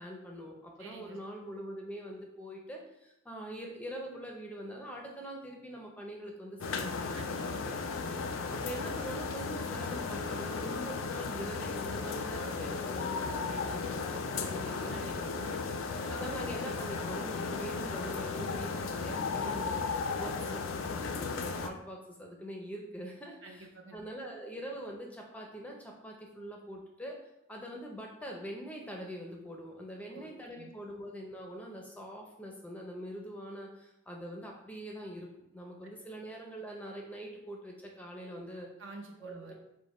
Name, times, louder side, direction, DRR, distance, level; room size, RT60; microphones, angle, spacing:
voice 1, 0.0-7.7 8.5-15.5 16.1-20.6 21.2-27.2 27.5-38.7 39.2-39.5, equal, 5° left, 0 dB, 0.5 m, -43 dB
voice 2, 0.8-1.2 7.1-8.6 14.9-15.5 20.2-20.4 23.4-24.0 30.1-30.3 30.6-30.7 38.8-39.5, right 2 dB, 65° right, 2 dB, 0.7 m, -50 dB
sound 1, 6.6-21.7, left 4 dB, 70° left, 0.4 m, -35 dB
5.0 x 2.1 x 4.1 m, 0.84 s
head